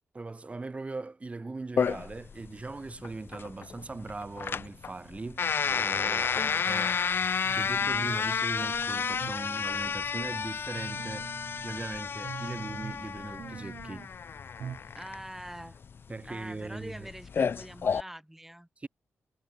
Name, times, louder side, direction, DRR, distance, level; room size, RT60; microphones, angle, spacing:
voice 1, 0.1-6.4 6.7-6.9 7.5-14.1 16.1-17.1 18.8-18.9, right 3 dB, 25° right, 2.6 m, -40 dB
sound 1, 1.8-18.0, left 6 dB, 50° left, 0.5 m, -31 dB
sound 2, 7.4-8.3 8.6-9.5 9.8-10.3 10.7-11.9 12.2-13.1 13.4-14.1 14.6-14.9 15.2-15.3, right 7 dB, 70° right, 2.2 m, -44 dB
voice 2, 14.9-15.8 16.2-18.7, right 1 dB, 5° right, 4.3 m, -44 dB
wide cardioid pair, 110°, 5 cm